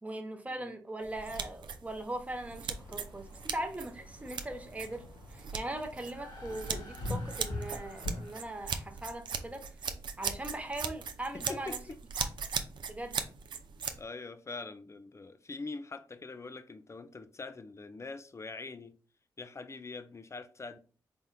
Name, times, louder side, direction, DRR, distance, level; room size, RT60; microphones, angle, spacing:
voice 1, 0.0-5.0 5.3-9.7 10.2-11.8 12.2-12.3 12.9-13.2, right 1 dB, 15° right, 0.9 m, -40 dB
sound 1, 1.0-14.0, right 6 dB, 60° right, 0.5 m, -39 dB
sound 2, 2.4-8.2, left 1 dB, 90° left, 1.3 m, -43 dB
sound 3, 6.0-9.6, left 3 dB, 55° left, 1.7 m, -54 dB
voice 2, 11.3-12.0 14.0-18.9 19.4-20.8, left 3 dB, 35° left, 0.5 m, -43 dB
4.2 x 3.5 x 2.2 m
hypercardioid pair, 40°, 9 cm